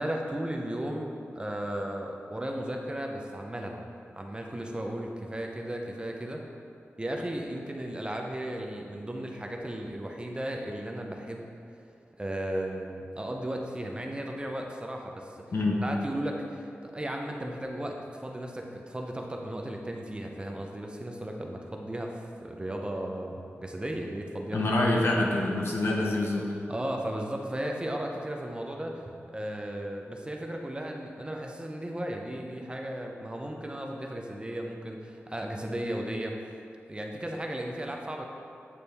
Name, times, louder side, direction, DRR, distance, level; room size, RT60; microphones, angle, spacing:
voice 1, 0.0-3.8 4.1-6.4 7.0-11.5 12.2-15.3 15.8-24.6 26.7-36.4 36.9-38.3, right 1 dB, 20° right, 1 dB, 0.6 m, -35 dB
voice 2, 24.5-26.4, left 2 dB, 65° left, -1 dB, 0.9 m, -26 dB
8.4 x 4.1 x 3.4 m, 2.5 s
wide cardioid pair, 80°, 5 cm